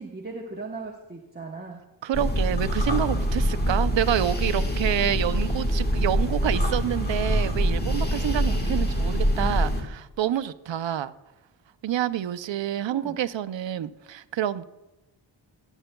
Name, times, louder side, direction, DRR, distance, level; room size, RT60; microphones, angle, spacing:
voice 1, 0.0-1.8 12.9-13.2, right 3 dB, 20° right, -1 dB, 1.0 m, -38 dB
voice 2, 2.0-11.1 11.8-14.6, right 11 dB, 70° right, 14 dB, 0.6 m, -28 dB
sound 1, 2.1-9.8, equal, 20° left, 1.5 m, -25 dB
21.5 x 8.1 x 2.2 m, 1.0 s
wide cardioid pair, 90°, 46 cm